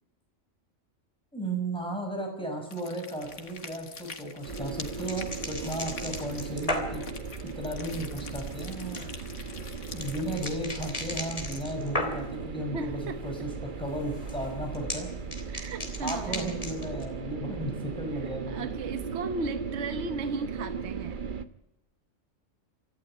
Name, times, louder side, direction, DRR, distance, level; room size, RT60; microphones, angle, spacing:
voice 1, 1.3-7.0 7.6-9.0 9.9-13.5 13.8-15.1 16.0-18.7, right 1 dB, 5° left, 2 dB, 5.9 m, -35 dB
sound 1, 2.6-11.6, left 5 dB, 70° left, 1.9 m, -46 dB
sound 2, 3.2-12.5 12.8-13.4 13.7-17.0, left 1 dB, 30° left, 3.1 m, -38 dB
sound 3, 4.5-21.4, right 5 dB, 45° right, 1.1 m, -37 dB
voice 2, 12.7-13.2 15.5-16.6 18.1-21.2, right 4 dB, 60° right, 9 dB, 1.2 m, -36 dB
25.0 x 14.0 x 8.9 m, 0.91 s
omnidirectional pair, 1.3 m